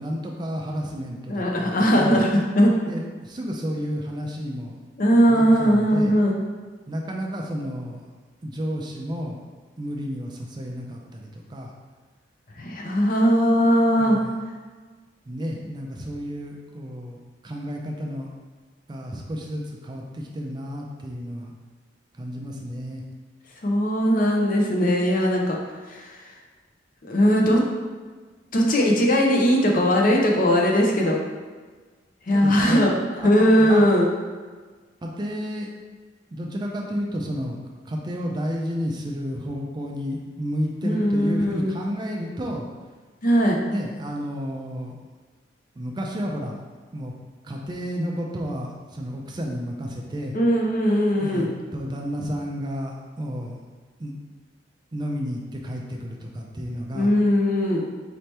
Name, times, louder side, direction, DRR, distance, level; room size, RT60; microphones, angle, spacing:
voice 1, 0.0-2.2 2.9-4.8 5.3-6.2 6.9-8.0 8.4-9.4 9.8-11.7 14.0-14.3 15.3-18.3 18.9-21.5 22.1-23.0 32.3-32.8 33.2-33.9 35.0-35.7 36.3-37.6 37.9-42.7 43.7-44.9 45.8-46.6 46.9-47.1 47.4-50.4 51.2-53.6 54.0-54.1 54.9-57.1, equal, 25° right, 0 dB, 0.4 m, -31 dB
voice 2, 1.3-2.8 5.0-6.4 12.6-14.2 23.6-25.6 25.9-26.2 27.1-27.6 28.5-31.2 32.3-32.9 33.2-34.1 40.8-41.7 43.2-43.6 50.3-51.5 56.9-57.9, equal, 50° left, 0 dB, 0.6 m, -19 dB
4.2 x 2.9 x 3.3 m, 1.4 s
head